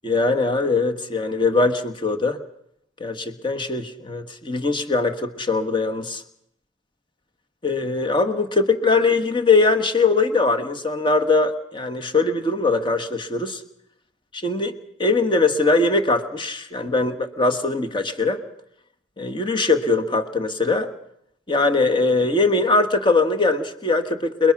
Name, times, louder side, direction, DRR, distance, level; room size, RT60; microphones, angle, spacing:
voice 1, 0.0-2.4 3.0-6.2 7.6-13.6 14.3-14.7 15.0-18.4 19.2-20.9 21.5-24.5, left 3 dB, 25° left, 6 dB, 1.4 m, -21 dB
28.5 x 21.5 x 6.0 m, 0.75 s
head